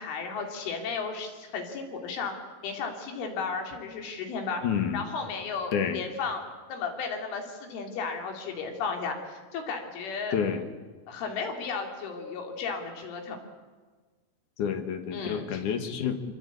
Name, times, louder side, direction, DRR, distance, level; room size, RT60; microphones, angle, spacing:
voice 1, 0.0-2.3 2.6-4.6 4.9-10.4 11.1-13.4 15.1-15.6, left 5 dB, 75° left, 3 dB, 5.8 m, -34 dB
voice 2, 4.6-5.0 5.7-6.0 10.3-10.6 14.6-16.3, left 7 dB, 55° left, 7 dB, 2.6 m, -29 dB
25.5 x 25.0 x 8.6 m, 1.4 s
omnidirectional pair, 5.7 m